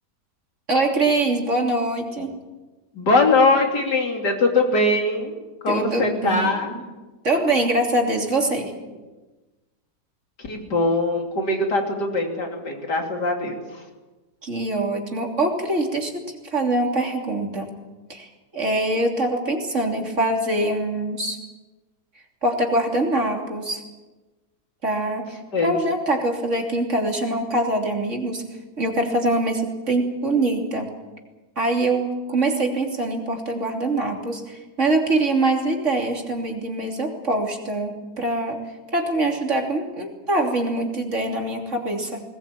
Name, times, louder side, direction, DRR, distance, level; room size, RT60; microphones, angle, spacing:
voice 1, 0.7-2.3 5.7-6.5 7.2-8.7 14.4-16.2 16.5-17.7 18.1-21.4 22.4-23.8 24.8-28.4 28.8-30.9 31.6-38.6 38.9-42.2, right 2 dB, 45° right, 2 dB, 3.4 m, -23 dB
voice 2, 2.9-5.3 5.6-6.7 10.4-13.8 25.5-25.7, left 2 dB, 85° left, 2 dB, 3.6 m, -21 dB
20.5 x 20.0 x 8.7 m, 1.2 s
omnidirectional pair, 1.8 m